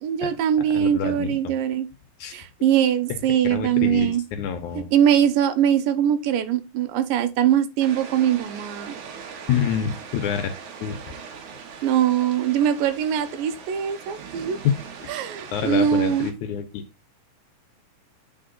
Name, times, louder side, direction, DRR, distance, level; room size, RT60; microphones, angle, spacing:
voice 1, 0.0-1.9 2.3-4.2 4.9-9.0 11.8-14.6 15.1-16.3, right 9 dB, 85° right, 2.4 m, -22 dB
voice 2, 0.7-1.5 2.2-2.3 3.5-4.9 9.5-10.5 10.8-11.0 14.6-15.1 15.5-16.8, left 8 dB, 70° left, 2.0 m, -27 dB
sound 1, 7.8-16.3, right 6 dB, 65° right, 2.5 m, -40 dB
8.8 x 4.4 x 3.8 m
omnidirectional pair, 4.0 m